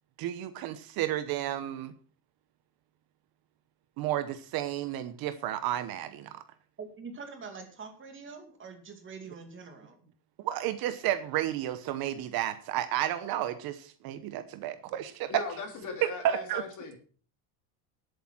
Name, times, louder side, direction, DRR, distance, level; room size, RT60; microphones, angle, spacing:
voice 1, 0.2-1.9 4.0-6.4 10.4-15.3 16.2-16.6, right 12 dB, 50° right, 12 dB, 1.0 m, -32 dB
voice 2, 6.8-10.1, right 5 dB, 25° right, 5 dB, 2.4 m, -44 dB
voice 3, 15.3-17.0, left 4 dB, 40° left, 4 dB, 3.3 m, -39 dB
11.5 x 8.5 x 6.0 m, 0.42 s
cardioid pair, 150°, 48 cm